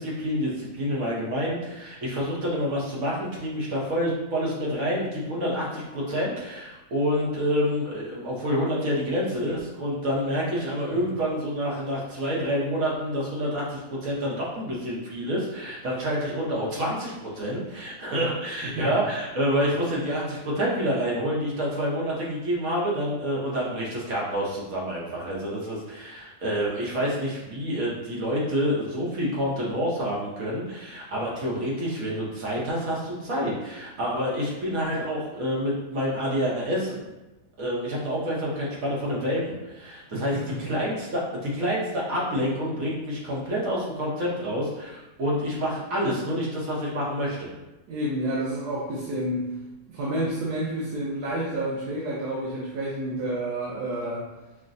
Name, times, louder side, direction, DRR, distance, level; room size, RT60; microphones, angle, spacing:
voice 1, 0.0-37.1 37.6-47.5, equal, 65° right, -5 dB, 1.4 m, -28 dB
voice 2, 18.6-18.9 40.1-40.6 47.9-49.5 49.9-54.2, right 1 dB, 90° right, -6 dB, 1.4 m, -29 dB
5.8 x 2.2 x 2.6 m, 1.1 s
omnidirectional pair, 1.6 m